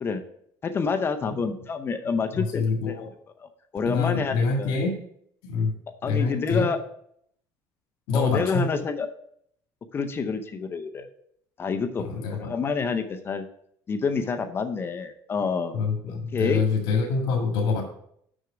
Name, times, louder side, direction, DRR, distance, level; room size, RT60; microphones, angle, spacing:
voice 1, 0.6-3.0 3.4-4.7 6.0-6.8 8.1-9.1 9.9-11.1 11.6-12.0 12.3-13.4 13.9-15.7 16.1-16.6, left 5 dB, 30° left, 8 dB, 0.6 m, -28 dB
voice 2, 2.3-3.1 3.9-5.0 5.4-5.7 6.1-6.7 8.1-8.6 12.0-12.5 15.7-17.8, left 4 dB, 80° left, 0 dB, 1.8 m, -25 dB
6.3 x 5.9 x 5.0 m, 0.68 s
cardioid pair, 140°, 8 cm